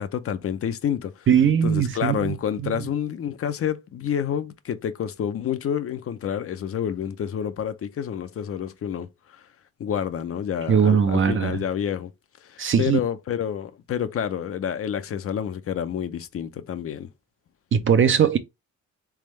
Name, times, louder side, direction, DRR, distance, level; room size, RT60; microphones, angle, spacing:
voice 1, 0.0-1.3 1.6-9.5 9.8-12.1 12.4-17.1, left 9 dB, 50° left, 0.6 m, -29 dB
voice 2, 1.3-2.3 2.6-2.7 10.7-11.6 12.6-13.0 17.7-18.4, right 7 dB, 40° right, 0.6 m, -20 dB
3.5 x 3.3 x 3.2 m
cardioid pair, 90°, 30 cm